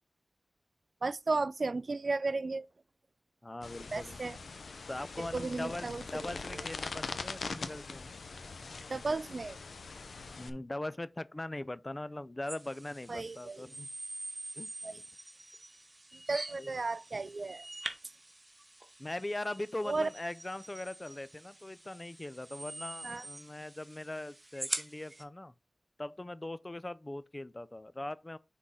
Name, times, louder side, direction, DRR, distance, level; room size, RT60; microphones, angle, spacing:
voice 1, 1.0-2.7 3.9-4.4 5.3-6.7 8.9-9.6 13.1-13.6 14.8-15.0 16.3-17.7 19.9-20.1 23.0-23.2, right 3 dB, 60° right, 0.3 m, -34 dB
voice 2, 3.4-4.2 4.9-8.1 10.4-13.9 14.6-14.7 16.6-16.8 19.0-25.5 26.0-28.4, left 1 dB, 30° left, 0.5 m, -41 dB
sound 1, 3.6-10.5, left 4 dB, 85° left, 0.7 m, -42 dB
sound 2, 12.5-25.2, right 1 dB, 30° right, 1.1 m, -45 dB
6.1 x 3.8 x 5.6 m
cardioid pair, 45°, 0 cm